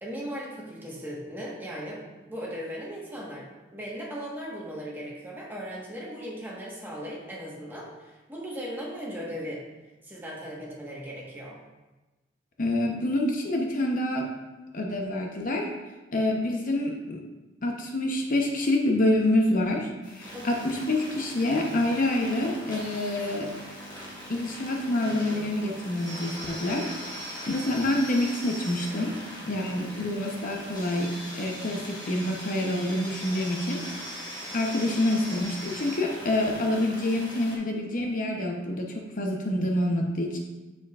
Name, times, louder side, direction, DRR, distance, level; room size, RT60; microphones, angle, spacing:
voice 1, 0.0-9.6 10.0-11.6 20.3-20.6, equal, 10° right, -4 dB, 1.2 m, -38 dB
voice 2, 12.6-14.3 14.7-15.7 16.1-17.2 17.6-23.5 24.3-29.1 29.5-33.8 34.5-40.4, left 1 dB, 45° left, 1 dB, 0.7 m, -27 dB
sound 1, 20.0-37.6, equal, 20° left, 1.3 m, -40 dB
7.2 x 6.9 x 2.4 m, 1.2 s
head